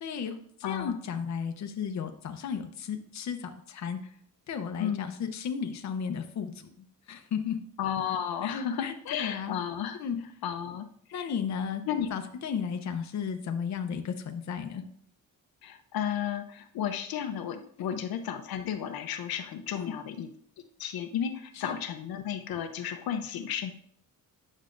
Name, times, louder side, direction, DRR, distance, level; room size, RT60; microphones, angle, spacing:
voice 1, 0.0-4.1 4.5-7.6 8.4-9.6 10.0-10.2 11.1-14.8 17.8-18.0 19.7-19.9 21.5-21.8, left 7 dB, 50° left, 6 dB, 0.7 m, -34 dB
voice 2, 0.6-1.0 4.8-5.1 7.8-10.0 10.4-10.9 11.1-11.3 11.9-12.1 15.6-20.3 20.8-23.7, left 9 dB, 85° left, 7 dB, 0.7 m, -33 dB
9.4 x 6.3 x 2.5 m, 0.63 s
cardioid pair, 145°, 35 cm